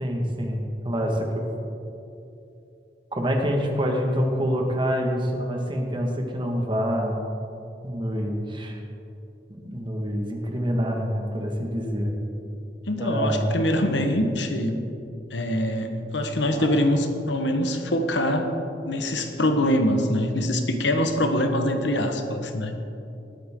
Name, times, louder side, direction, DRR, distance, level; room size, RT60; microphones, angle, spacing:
voice 1, 0.0-1.5 3.1-7.2 7.8-8.8 9.5-12.1 13.0-13.9 16.5-16.7, equal, 30° right, 2 dB, 1.6 m, -26 dB
voice 2, 12.9-14.8 15.3-18.6 18.8-22.7, left 1 dB, 85° left, 6 dB, 1.2 m, -24 dB
19.0 x 8.9 x 3.7 m, 2.8 s
head